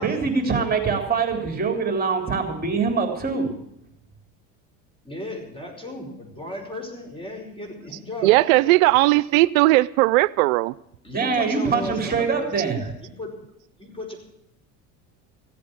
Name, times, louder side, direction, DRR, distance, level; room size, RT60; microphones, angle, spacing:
voice 1, 0.0-3.5 11.1-12.8, right 5 dB, 20° right, 3.3 m, -24 dB
voice 2, 5.1-8.9 11.0-13.3 13.8-14.2, left 1 dB, 15° left, 5.5 m, -35 dB
voice 3, 8.2-10.7, right 20 dB, 85° right, 0.5 m, -17 dB
16.0 x 8.5 x 8.8 m
supercardioid pair, 100°, 40 cm